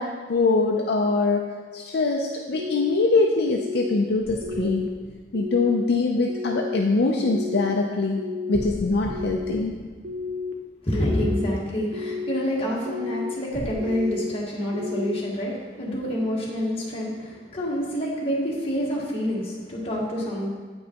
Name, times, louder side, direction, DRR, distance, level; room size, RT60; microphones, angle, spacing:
voice 1, 0.0-1.5 1.7-4.9 5.3-8.2 8.5-9.7 15.9-16.0, left 3 dB, 65° left, 0 dB, 0.5 m, -23 dB
sound 1, 2.5-3.0 3.5-4.0 4.4-4.9 5.3-5.8 6.3-6.8 7.2-7.7 8.2-8.6 9.1-9.6 10.0-10.5 11.0-11.5 11.9-12.4 12.9-13.3 13.8-14.3 14.7-15.2, left 4 dB, 70° right, 0.6 m, -32 dB
sound 2, 4.2-6.1 8.5-11.1 13.5-13.7, equal, 15° left, 0.7 m, -39 dB
voice 2, 10.8-20.5, equal, 35° left, -5 dB, 1.5 m, -27 dB
8.8 x 5.3 x 2.9 m, 1.4 s
head